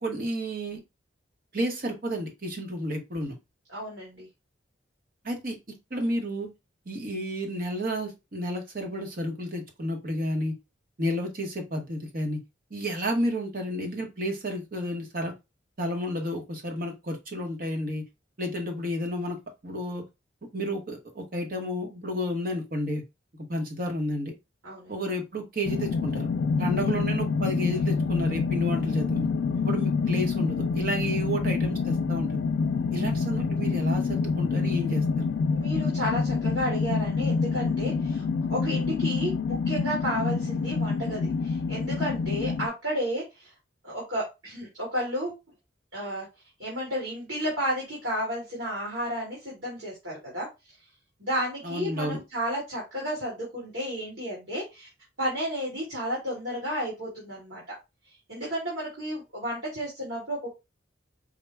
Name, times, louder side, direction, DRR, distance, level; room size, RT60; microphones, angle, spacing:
voice 1, 0.0-0.8 1.5-3.3 5.2-5.6 5.9-6.5 6.9-10.5 11.0-12.4 12.7-15.3 15.8-18.0 18.4-19.4 19.6-20.0 20.5-23.0 23.5-24.3 24.9-26.3 26.6-29.3 29.6-32.4 32.9-35.0 51.6-52.2, equal, 45° right, 3 dB, 1.0 m, -31 dB
voice 2, 3.7-4.3 24.6-24.9 26.8-26.9 29.6-29.7 35.5-38.2 38.5-43.5 43.8-45.4 45.9-46.3 46.6-50.5 51.2-54.9 55.2-57.6 58.3-60.5, equal, 75° right, -5 dB, 2.1 m, -32 dB
sound 1, 25.7-42.7, left 4 dB, 80° left, 0.3 m, -27 dB
5.1 x 2.2 x 3.3 m, 0.24 s
head